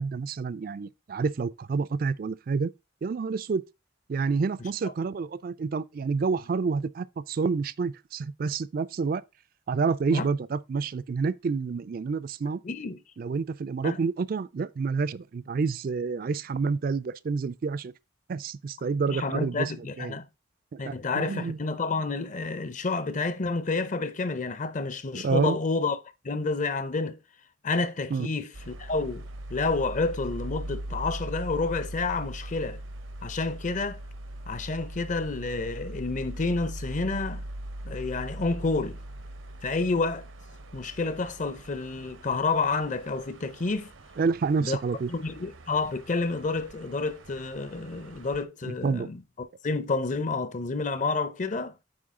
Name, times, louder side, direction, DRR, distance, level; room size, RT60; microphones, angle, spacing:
voice 1, 0.0-2.7 3.0-3.6 4.1-9.2 9.7-12.6 13.2-17.9 18.3-20.2 20.7-21.6 25.1-25.6 28.1-28.3 44.2-45.1 48.6-49.1, right 4 dB, 45° right, 0.3 m, -28 dB
voice 2, 12.6-13.0 13.8-14.0 19.1-20.3 20.8-26.0 26.2-27.2 27.6-29.2 29.5-32.8 33.2-34.0 34.5-37.4 37.8-39.0 39.6-40.2 40.7-43.9 44.6-44.8 45.1-49.2 49.6-51.7, left 3 dB, 40° left, 0.6 m, -29 dB
sound 1, 28.5-48.4, right 1 dB, 85° right, 0.9 m, -41 dB
8.7 x 4.3 x 3.7 m
head